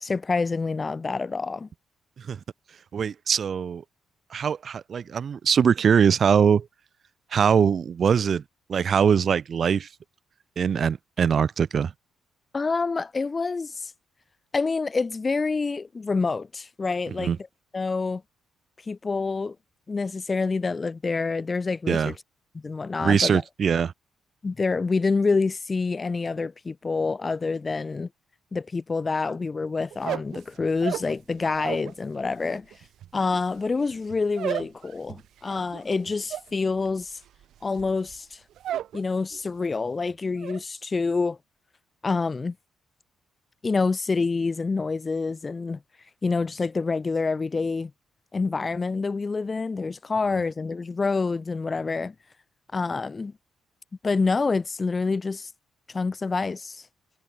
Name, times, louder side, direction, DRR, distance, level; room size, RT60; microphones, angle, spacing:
voice 1, 0.0-1.7 12.5-13.9 14.5-17.3 17.7-18.2 18.9-19.6 19.9-22.1 22.5-23.4 24.4-28.1 28.5-32.7 33.1-37.2 37.6-38.4 38.9-41.4 42.0-42.6 43.6-45.8 46.2-47.9 48.3-52.1 52.7-53.3 54.0-55.5 55.9-56.8, left 4 dB, 30° left, 0.6 m, -27 dB
voice 2, 2.9-3.8 4.3-6.7 7.3-8.4 8.7-9.9 10.6-11.9 17.2-17.4 21.9-22.1 23.0-23.9, right 7 dB, 50° right, 1.0 m, -22 dB
sound 1, 29.9-31.9 32.2-39.0 39.3-39.8 40.1-40.6, right 11 dB, 75° right, 4.8 m, -35 dB
cardioid pair, 90°, 0 cm